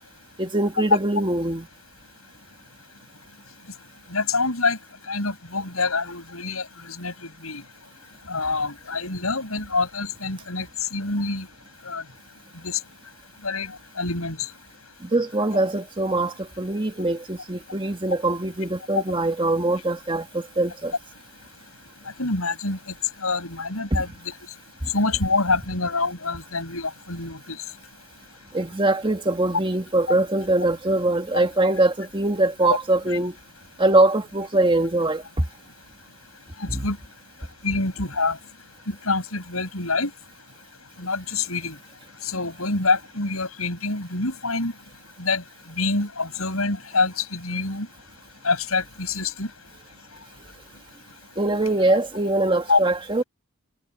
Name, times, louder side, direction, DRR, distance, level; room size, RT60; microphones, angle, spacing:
voice 1, 0.4-1.7 15.0-20.9 23.9-24.0 24.8-24.9 28.5-33.3 33.8-35.2 36.7-36.9 51.4-53.2, right 2 dB, 25° right, 1.7 m, -22 dB
voice 2, 4.1-4.8 5.1-7.1 7.4-7.6 8.3-11.5 11.8-12.0 12.6-12.8 13.4-13.7 14.0-14.5 22.2-22.8 23.2-24.3 24.9-27.6 33.1-33.2 36.6-37.0 37.6-38.4 38.9-40.1 41.0-41.8 42.2-44.7 45.2-45.4 45.8-47.9 48.4-49.5 52.7-52.8, left 3 dB, 80° left, 7.1 m, -26 dB
head